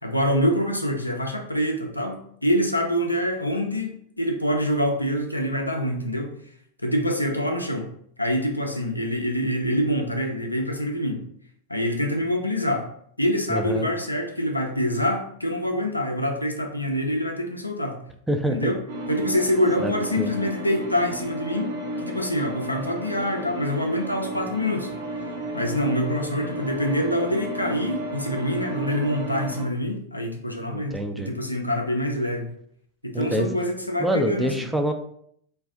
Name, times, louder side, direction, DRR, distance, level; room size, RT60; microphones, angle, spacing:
voice 1, 0.0-3.9 4.2-6.4 6.8-7.9 8.2-11.2 11.7-12.9 13.2-18.0 18.5-18.8 19.1-24.9 25.5-32.5 33.0-34.5, equal, 85° left, 2 dB, 0.4 m, -25 dB
voice 2, 13.5-13.9 18.3-18.7 19.8-20.3 30.7-31.3 33.1-33.5 34.0-34.9, right 1 dB, 5° right, 5 dB, 0.3 m, -26 dB
sound 1, 18.9-29.6, right 2 dB, 60° right, 0.6 m, -33 dB
2.4 x 2.2 x 3.5 m, 0.67 s
figure-of-eight pair, 90°, 0 cm